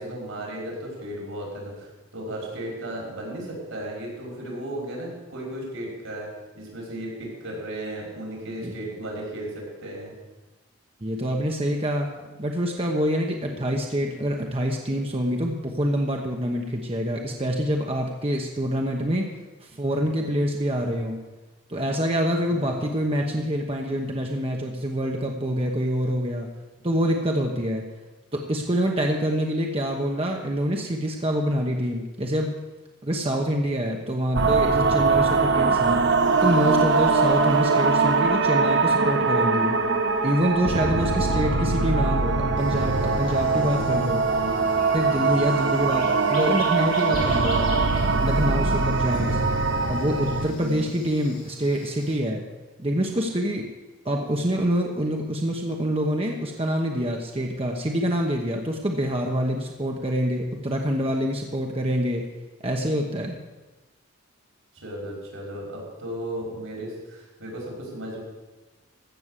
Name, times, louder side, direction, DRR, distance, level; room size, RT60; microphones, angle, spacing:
voice 1, 0.0-10.1 13.5-13.8 22.5-23.0 33.9-34.1 41.2-41.5 43.7-44.0 44.3-44.7 45.5-45.8 48.5-48.9 50.6-50.9 64.7-68.2, right 1 dB, 80° right, -2 dB, 5.5 m, -36 dB
voice 2, 11.0-12.1 12.4-19.3 19.6-21.2 21.7-26.5 26.8-27.8 28.3-32.5 33.0-36.0 36.4-39.8 40.2-44.2 44.9-47.7 48.2-49.4 49.9-52.4 52.8-53.7 54.0-62.3 62.6-63.4, equal, 25° right, 1 dB, 1.0 m, -26 dB
sound 1, 34.3-50.5, right 4 dB, 55° right, 0.8 m, -22 dB
Brass instrument, 38.5-46.5, right 1 dB, 5° right, 2.4 m, -35 dB
sound 2, 42.6-52.1, left 2 dB, 40° left, 3.9 m, -43 dB
15.0 x 6.5 x 8.2 m, 1.1 s
head